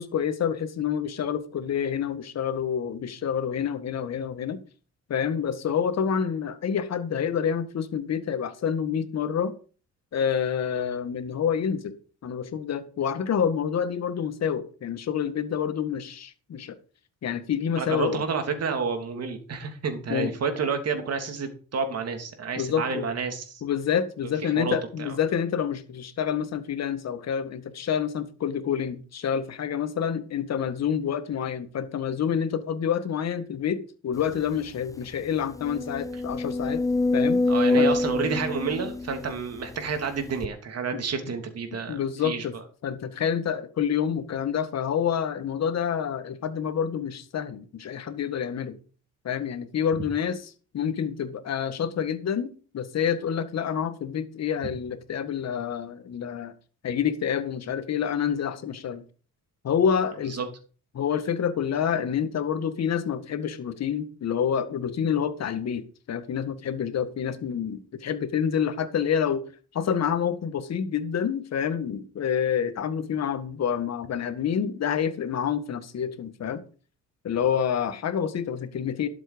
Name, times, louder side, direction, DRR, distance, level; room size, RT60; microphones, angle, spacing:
voice 1, 0.0-4.6 5.1-9.5 10.1-12.0 12.2-16.7 17.2-18.2 20.1-20.3 22.6-23.1 23.6-36.8 37.1-37.4 37.8-37.9 40.9-41.0 41.9-42.5 42.8-48.8 49.2-56.5 56.8-59.0 59.6-60.4 60.9-69.4 69.7-76.6 77.2-79.1, left 8 dB, 60° left, 1.7 m, -28 dB
voice 2, 17.8-23.6 24.4-25.2 37.5-42.5 60.3-60.5, right 5 dB, 55° right, 3.2 m, -30 dB
sound 1, 34.4-34.5 34.9-35.0 35.5-39.8 40.4-40.5, left 2 dB, 10° left, 0.6 m, -25 dB
12.0 x 7.7 x 5.2 m
cardioid pair, 90°, 30 cm